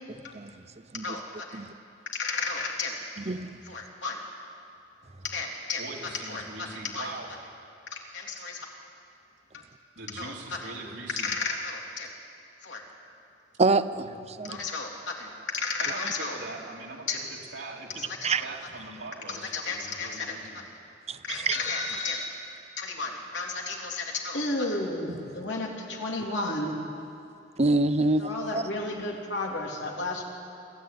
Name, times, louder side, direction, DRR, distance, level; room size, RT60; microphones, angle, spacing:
voice 1, 0.9-1.6 2.1-3.0 3.7-4.2 5.2-5.8 6.3-7.1 7.9-8.7 10.2-10.3 10.6-10.7 11.2-12.1 12.6-12.8 14.4-16.4 17.1-17.2 18.0-18.4 19.3-20.4 20.7-20.8 21.2-22.4 22.8-26.8 28.2-30.2, left 3 dB, 80° left, -1 dB, 3.5 m, -33 dB
voice 2, 5.8-7.4 10.0-11.3 15.8-18.1 18.4-20.6, right 3 dB, 80° right, -2 dB, 3.5 m, -41 dB
voice 3, 13.6-14.6 18.2-18.4 21.1-21.2 21.5-21.6 25.1-25.2 27.6-28.3 28.5-28.6, right 3 dB, 35° right, 12 dB, 0.8 m, -25 dB
26.5 x 14.0 x 9.5 m, 2.6 s
head